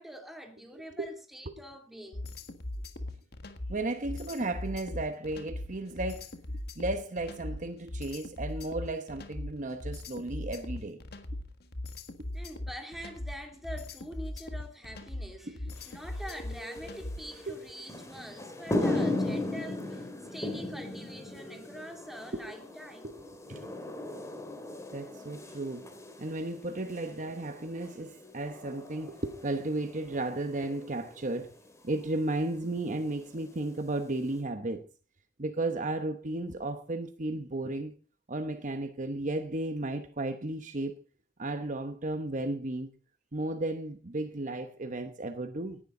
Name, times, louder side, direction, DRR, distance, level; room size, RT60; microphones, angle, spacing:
voice 1, 0.0-2.3 12.3-23.1, equal, ahead, 2.7 m, -45 dB
sound 1, 2.1-17.4, left 1 dB, 60° left, 1.8 m, -39 dB
voice 2, 3.7-6.3 6.8-11.0 15.5-15.7 17.5-17.6 23.0-23.8 24.9-25.8 26.2-31.5 31.8-34.8 35.4-37.9 38.3-40.9 41.4-42.9 43.3-45.8, right 2 dB, 45° right, 1.0 m, -34 dB
sound 2, 15.7-34.4, left 2 dB, 15° left, 3.0 m, -38 dB
18.5 x 11.5 x 3.8 m
head